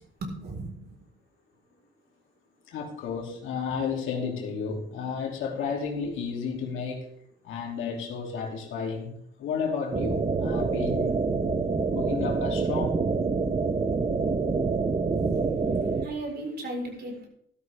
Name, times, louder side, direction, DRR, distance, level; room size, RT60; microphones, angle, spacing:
voice 1, 0.2-1.0 14.8-17.3, right 2 dB, 55° right, 1 dB, 4.6 m, -37 dB
voice 2, 2.7-7.1 7.4-11.2 11.9-13.0, left 6 dB, 85° left, 1 dB, 3.0 m, -32 dB
sound 1, 9.9-16.1, right 4 dB, 30° right, 1.1 m, -26 dB
13.5 x 13.0 x 3.6 m, 0.68 s
cardioid pair, 90°, 20 cm